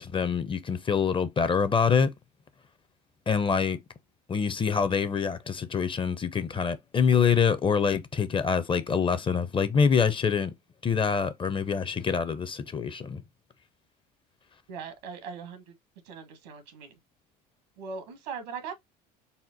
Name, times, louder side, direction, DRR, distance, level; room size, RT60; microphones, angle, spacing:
voice 1, 0.0-2.1 3.3-3.8 4.3-10.5 10.8-13.2, left 6 dB, 25° left, 0.6 m, -25 dB
voice 2, 14.7-15.7 16.0-16.9 17.8-18.7, right 5 dB, 80° right, 1.3 m, -40 dB
4.2 x 2.1 x 4.0 m
hypercardioid pair, 80°, 21 cm